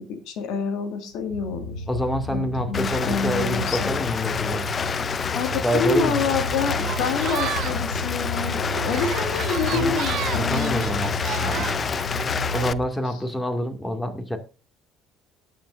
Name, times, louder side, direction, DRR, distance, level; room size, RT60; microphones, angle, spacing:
voice 1, 0.0-1.8 2.3-3.9 5.3-10.8, left 5 dB, 60° left, 7 dB, 2.1 m, -27 dB
sound 1, 1.2-12.8, left 3 dB, 85° left, 0.9 m, -32 dB
voice 2, 1.9-4.7 5.6-6.3 9.7-10.0 10.3-11.7 12.5-14.4, equal, 10° left, 6 dB, 2.3 m, -27 dB
Rain, 2.7-12.7, left 6 dB, 35° left, 0.5 m, -28 dB
sound 2, 6.5-12.8, right 12 dB, 55° right, 0.5 m, -34 dB
18.5 x 7.9 x 2.6 m, 0.32 s
hypercardioid pair, 55°, 0 cm